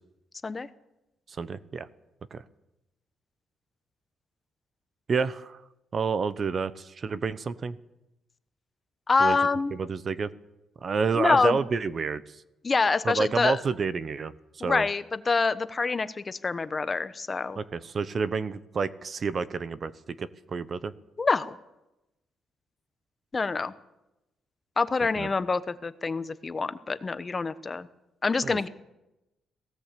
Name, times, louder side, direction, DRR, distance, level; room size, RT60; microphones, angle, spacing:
voice 1, 1.4-1.9 2.3-2.4 5.1-5.6 5.9-7.8 9.2-9.4 9.8-10.3 10.8-12.2 13.0-14.8 17.6-19.9 20.2-20.9 25.2-25.3 28.4-28.6, right 5 dB, 45° right, 16 dB, 1.0 m, -29 dB
voice 2, 9.1-9.7 11.1-11.6 12.6-13.6 14.6-17.6 21.2-21.6 23.3-23.7 24.8-27.9 28.2-28.7, left 4 dB, 30° left, 13 dB, 1.1 m, -26 dB
18.0 x 16.5 x 8.5 m, 0.92 s
cardioid pair, 90°, 0 cm